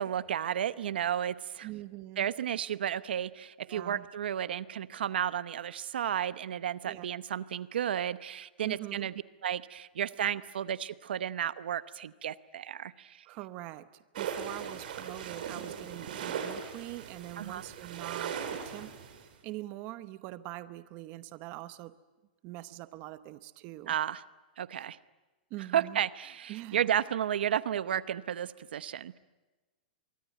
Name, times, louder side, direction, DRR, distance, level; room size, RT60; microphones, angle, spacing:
voice 1, 0.0-1.7 2.2-9.1 9.4-13.2 17.4-17.6 23.9-24.2 24.6-25.0 25.7-29.2, right 10 dB, 85° right, 15 dB, 0.8 m, -33 dB
voice 2, 1.6-2.3 3.7-4.1 6.8-7.1 8.6-9.1 13.3-13.9 14.2-18.9 19.4-21.9 22.4-23.9 25.5-26.0 26.5-26.9, right 16 dB, 30° right, 13 dB, 0.9 m, -43 dB
sound 1, 14.2-19.2, right 7 dB, 60° right, 4.5 m, -39 dB
24.0 x 24.0 x 9.2 m, 1.2 s
supercardioid pair, 165°, 5 cm